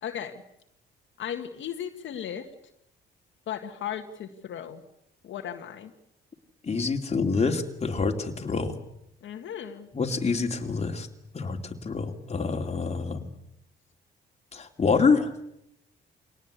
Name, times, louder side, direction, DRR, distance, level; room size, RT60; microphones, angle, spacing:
voice 1, 0.0-0.4 1.2-2.5 3.5-4.8 5.2-5.9 9.2-9.9, left 9 dB, 70° left, 4 dB, 1.9 m, -36 dB
voice 2, 6.6-8.8 9.9-11.1 11.3-13.3 14.5-15.3, left 4 dB, 35° left, 4 dB, 2.8 m, -26 dB
23.5 x 18.5 x 8.3 m, 0.78 s
cardioid pair, 90°, 20 cm